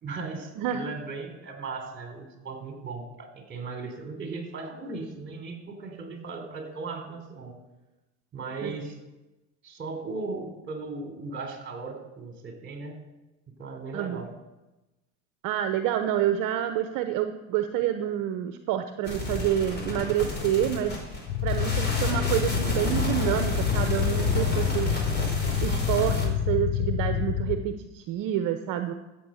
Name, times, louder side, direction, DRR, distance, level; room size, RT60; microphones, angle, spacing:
voice 1, 0.0-7.6 8.3-9.0 9.6-13.0 13.6-14.3, right 3 dB, 30° right, 4 dB, 3.7 m, -37 dB
voice 2, 13.9-14.3 15.4-20.9 21.4-25.0 25.6-28.9, right 11 dB, 60° right, 8 dB, 1.0 m, -28 dB
sound 1, 19.0-26.3, left 1 dB, 30° left, 4.6 m, -31 dB
sound 2, 21.3-27.6, left 9 dB, 60° left, 1.2 m, -27 dB
14.5 x 7.8 x 6.5 m, 1.0 s
supercardioid pair, 95°, 37 cm